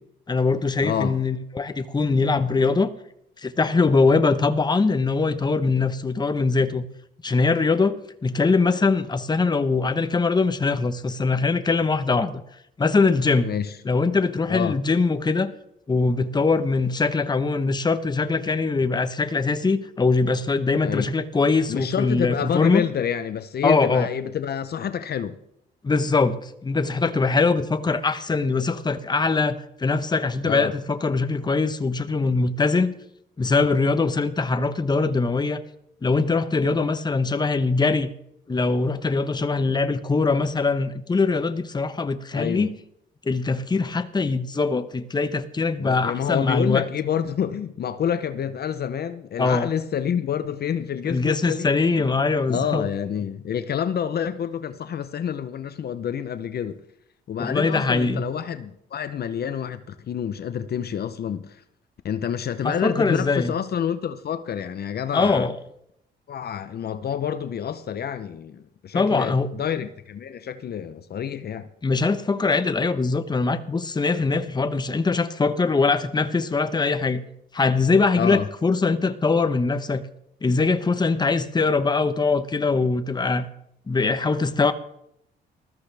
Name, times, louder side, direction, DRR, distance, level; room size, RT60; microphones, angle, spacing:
voice 1, 0.3-2.9 3.4-6.8 7.2-8.0 8.2-12.4 12.8-13.5 13.8-15.5 15.9-22.8 23.6-24.1 25.8-32.9 33.4-35.6 36.0-38.1 38.5-42.7 43.3-46.9 49.4-49.7 51.0-52.9 57.4-58.2 62.6-63.5 65.1-65.6 68.9-69.5 71.8-77.2 77.5-80.1 80.4-83.5 83.9-84.7, left 4 dB, 20° left, 1.0 m, -22 dB
voice 2, 0.8-1.1 13.4-13.7 14.5-14.8 20.8-21.1 21.7-25.4 30.4-30.7 42.3-42.7 45.8-52.0 52.5-56.8 57.3-61.6 62.0-65.5 66.3-71.7 78.1-78.5, left 8 dB, 55° left, 0.8 m, -28 dB
20.0 x 14.0 x 3.4 m
cardioid pair, 90°, 20 cm